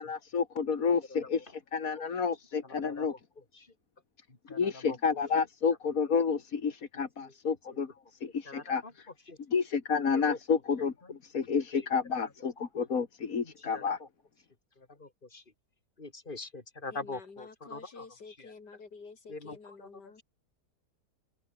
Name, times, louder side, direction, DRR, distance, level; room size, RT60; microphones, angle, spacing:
voice 1, 0.0-3.1 4.5-9.0 9.5-10.9 11.3-14.0, left 5 dB, 55° left, 2.3 m, -30 dB
voice 2, 1.1-1.5 2.6-3.1 3.4-3.7 4.3-5.0 6.9-7.5 8.4-8.9 9.3-9.4 10.1-10.4 11.0-11.2 11.5-11.9 12.1-12.2 12.6-12.7 13.4-14.1 14.8-15.4 16.0-18.5 19.3-20.2, left 3 dB, 30° left, 3.6 m, -45 dB
voice 3, 16.9-20.2, left 4 dB, 80° left, 3.6 m, -49 dB
open air
omnidirectional pair, 1.8 m